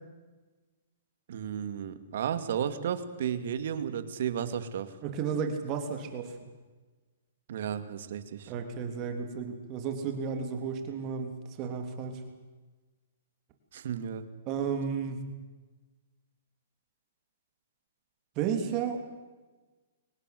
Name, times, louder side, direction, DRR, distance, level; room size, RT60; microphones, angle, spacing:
voice 1, 1.3-4.9 7.5-8.5 13.7-14.2, right 8 dB, 60° right, 11 dB, 2.4 m, -33 dB
voice 2, 5.0-6.4 8.5-12.2 14.4-15.3 18.3-19.0, right 6 dB, 30° right, 6 dB, 3.4 m, -33 dB
24.0 x 19.0 x 7.9 m, 1.3 s
hypercardioid pair, 150°, 0 cm